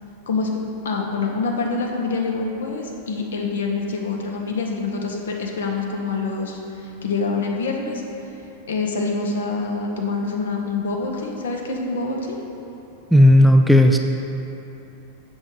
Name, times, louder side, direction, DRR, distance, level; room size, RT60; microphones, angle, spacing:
voice 1, 0.8-8.0 8.7-12.4, left 4 dB, 65° left, 1 dB, 0.8 m, -26 dB
voice 2, 13.1-14.0, left 1 dB, ahead, 4 dB, 0.3 m, -12 dB
7.4 x 6.2 x 3.3 m, 2.9 s
figure-of-eight pair, 90°, 0 cm